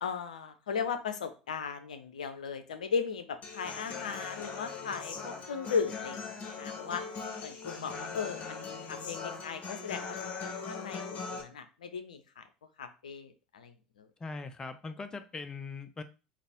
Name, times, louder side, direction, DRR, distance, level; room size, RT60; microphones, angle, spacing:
voice 1, 0.0-7.0 7.4-12.4 12.8-14.1, left 6 dB, 75° left, 0.5 m, -37 dB
Human voice / Acoustic guitar, 3.4-11.4, left 5 dB, 40° left, 1.0 m, -40 dB
voice 2, 14.2-16.0, left 4 dB, 20° left, 0.5 m, -40 dB
4.0 x 2.6 x 3.5 m
figure-of-eight pair, 70°, 4 cm